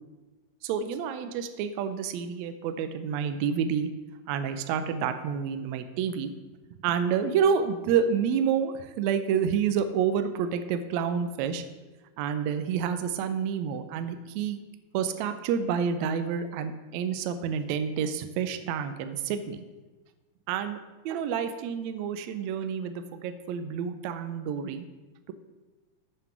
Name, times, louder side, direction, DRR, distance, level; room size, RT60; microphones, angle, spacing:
voice 1, 0.6-3.9 4.3-6.3 6.8-11.6 12.2-14.6 14.9-19.6 20.5-20.8 21.0-24.8, right 7 dB, 85° right, 9 dB, 1.6 m, -29 dB
7.3 x 5.7 x 5.9 m, 1.2 s
omnidirectional pair, 3.8 m